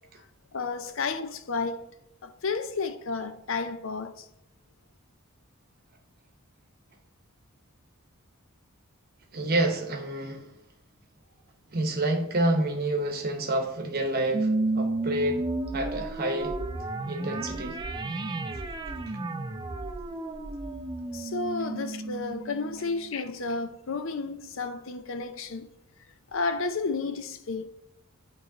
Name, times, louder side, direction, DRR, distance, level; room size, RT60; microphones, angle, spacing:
voice 1, 0.5-1.9 2.2-4.3 21.1-25.7 26.3-27.7, left 4 dB, 65° left, 0.6 m, -32 dB
voice 2, 9.3-10.5 11.7-15.4 15.7-16.6 17.1-17.8 18.9-19.0, right 1 dB, 45° right, 0.9 m, -28 dB
sound 1, 14.3-23.1, right 2 dB, 20° right, 0.4 m, -32 dB
8.8 x 3.1 x 3.9 m
head